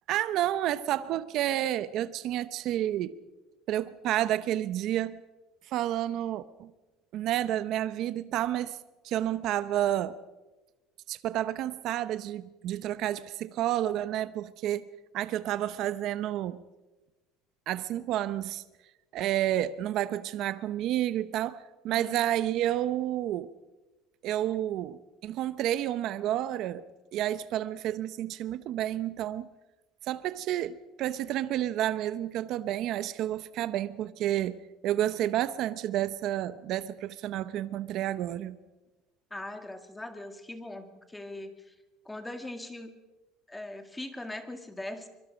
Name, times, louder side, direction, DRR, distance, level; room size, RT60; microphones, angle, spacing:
voice 1, 0.1-3.1 3.7-5.2 5.7-6.7 7.1-8.8 9.0-10.2 11.1-14.9 15.1-16.6 17.7-18.6 19.1-23.5 24.2-26.8 27.1-29.5 30.0-38.6, right 12 dB, 50° right, 0.8 m, -30 dB
voice 2, 39.3-41.7 42.1-42.9 43.5-45.1, left 1 dB, 5° left, 1.9 m, -40 dB
24.0 x 22.5 x 5.2 m
cardioid pair, 155°, 0 cm